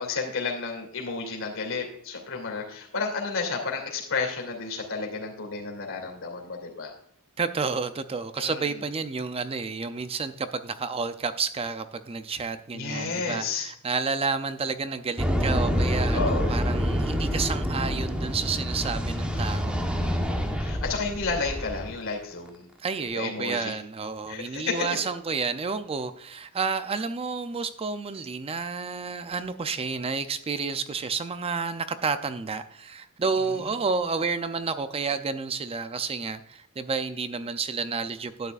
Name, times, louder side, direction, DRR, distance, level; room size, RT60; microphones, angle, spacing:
voice 1, 0.0-6.9 8.4-8.7 12.7-13.7 16.1-16.6 20.6-22.7 23.1-23.7 24.3-24.9, left 4 dB, 65° left, 1 dB, 2.6 m, -31 dB
voice 2, 7.4-19.8 22.8-38.5, right 4 dB, 25° right, 11 dB, 0.4 m, -30 dB
sound 1, 15.2-21.9, equal, 5° right, 1.1 m, -27 dB
12.0 x 9.2 x 2.4 m, 0.66 s
head